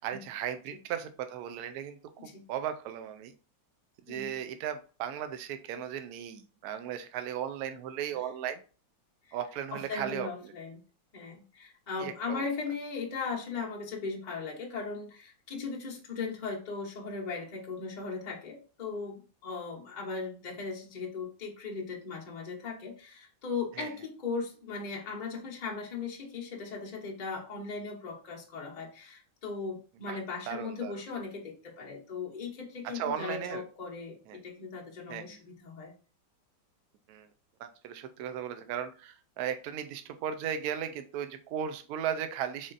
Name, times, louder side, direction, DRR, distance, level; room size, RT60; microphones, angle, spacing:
voice 1, 0.0-3.3 4.1-8.6 9.3-10.3 12.0-12.5 23.8-23.9 30.0-30.2 30.5-30.9 32.8-33.6 34.3-34.4 35.1-35.4 37.1-37.3 37.6-42.7, right 9 dB, 75° right, 9 dB, 0.9 m, -36 dB
voice 2, 4.1-4.4 9.7-10.8 11.1-35.9, left 4 dB, 40° left, -2 dB, 0.6 m, -38 dB
3.8 x 3.6 x 2.5 m, 0.36 s
omnidirectional pair, 2.0 m